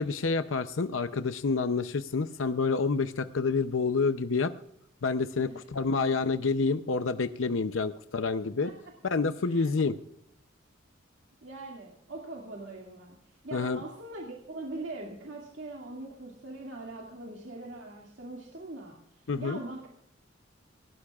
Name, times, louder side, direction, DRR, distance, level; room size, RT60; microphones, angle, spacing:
voice 1, 0.0-4.5 5.0-8.7 9.0-10.0 13.5-13.8 19.3-19.6, left 4 dB, 85° left, 9 dB, 0.7 m, -28 dB
voice 2, 11.4-19.0 19.4-19.9, right 2 dB, 65° right, -1 dB, 2.3 m, -42 dB
20.0 x 18.0 x 2.4 m, 0.72 s
head